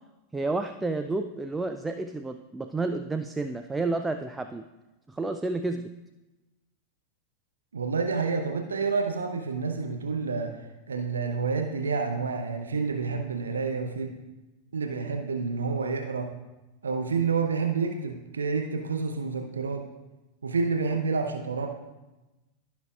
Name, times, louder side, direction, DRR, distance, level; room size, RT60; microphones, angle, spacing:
voice 1, 0.3-4.7 5.1-5.9, right 3 dB, 10° right, 7 dB, 0.4 m, -30 dB
voice 2, 7.7-10.6 10.9-14.1 14.7-16.3 16.8-19.8 20.4-21.7, right 4 dB, 70° right, 3 dB, 0.7 m, -29 dB
15.5 x 6.0 x 2.4 m, 1.1 s
figure-of-eight pair, 90°, 0 cm